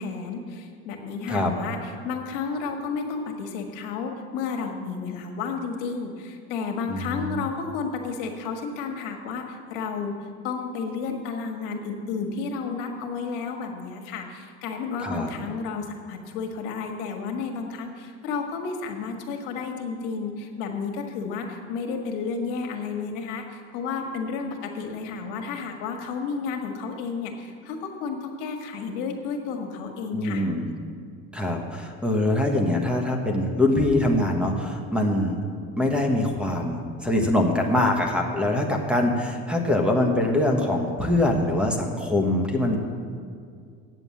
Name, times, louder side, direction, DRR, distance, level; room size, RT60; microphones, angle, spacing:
voice 1, 0.0-10.2 10.4-30.5, left 5 dB, 80° left, 3 dB, 1.6 m, -32 dB
voice 2, 6.9-7.5 15.0-15.3 30.1-30.7 31.3-35.5 35.8-42.8, left 1 dB, 5° right, 2 dB, 1.2 m, -23 dB
9.0 x 7.5 x 8.4 m, 2.2 s
cardioid pair, 130°, 31 cm